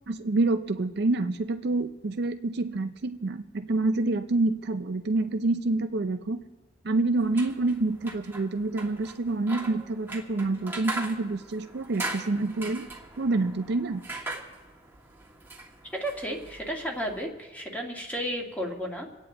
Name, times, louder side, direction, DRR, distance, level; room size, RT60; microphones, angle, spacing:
voice 1, 0.1-6.4 6.8-12.9 13.2-14.0, right 2 dB, 60° right, 8 dB, 0.5 m, -27 dB
metalworking.scissors, 7.2-17.3, right 2 dB, 10° right, 1.6 m, -40 dB
voice 2, 15.9-19.1, equal, 10° left, 0 dB, 1.9 m, -33 dB
27.5 x 9.2 x 3.9 m, 1.2 s
head